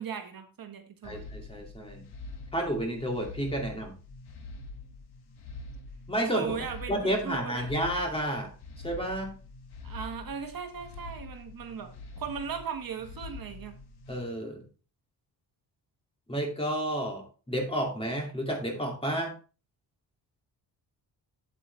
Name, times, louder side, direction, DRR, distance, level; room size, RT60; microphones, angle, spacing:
voice 1, 0.0-1.2 6.3-7.7 9.8-11.9 12.2-13.8, right 7 dB, 55° right, 6 dB, 1.4 m, -38 dB
Horror Pulsating Drone Loop, 1.0-14.2, left 3 dB, 70° left, 1.7 m, -45 dB
voice 2, 1.0-2.0 2.5-3.9 6.1-6.6 6.9-8.5 8.8-9.4 14.1-14.6 16.3-19.3, right 1 dB, 15° left, 1 dB, 2.4 m, -31 dB
8.3 x 8.1 x 3.3 m, 0.36 s
wide cardioid pair, 140°, 41 cm